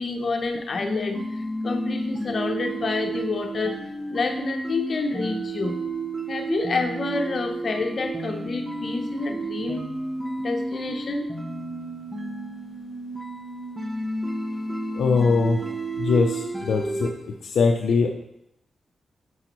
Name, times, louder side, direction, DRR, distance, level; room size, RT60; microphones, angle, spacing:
voice 1, 0.0-3.7 4.1-5.8 6.3-9.8 10.4-11.3, left 3 dB, 55° left, 5 dB, 0.8 m, -28 dB
sound 1, 0.7-17.1, right 2 dB, 15° right, 0.8 m, -32 dB
voice 2, 14.9-15.6 16.0-17.1 17.4-18.1, left 4 dB, 80° left, 2 dB, 0.5 m, -21 dB
6.1 x 5.6 x 3.0 m, 0.80 s
cardioid pair, 55°, 0 cm